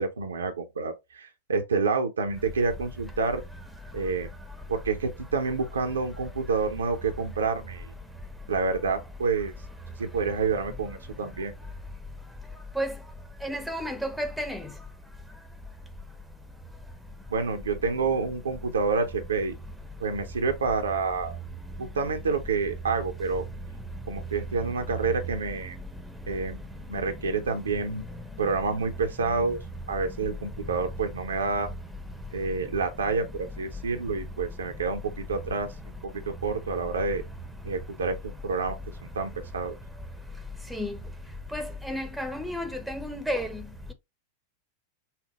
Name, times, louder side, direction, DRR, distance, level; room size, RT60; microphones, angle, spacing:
voice 1, 0.0-3.4 3.9-4.3 4.7-7.9 8.5-9.5 10.0-11.5 17.3-19.6 20.0-21.4 21.8-23.4 24.1-25.8 26.3-26.6 26.9-28.0 28.4-29.6 29.9-31.7 32.3-35.7 36.4-37.2 37.6-38.2 38.4-38.8 39.1-39.7, right 4 dB, 70° right, 0.8 m, -28 dB
voice 2, 13.4-14.6 40.7-41.0 41.5-43.6, equal, ahead, 0.9 m, -31 dB
5.9 x 2.1 x 3.3 m
figure-of-eight pair, 90°, 0 cm